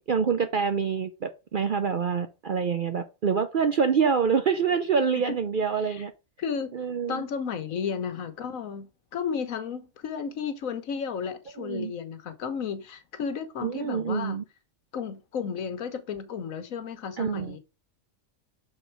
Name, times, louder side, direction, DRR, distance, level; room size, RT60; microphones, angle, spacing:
voice 1, 0.1-6.1 6.7-7.2 11.6-11.9 13.6-14.4 17.2-17.6, right 6 dB, 55° right, 0.6 m, -26 dB
voice 2, 6.4-6.7 7.1-14.4 14.9-17.6, left 6 dB, 80° left, 1.3 m, -33 dB
6.6 x 4.4 x 4.5 m
omnidirectional pair, 1.4 m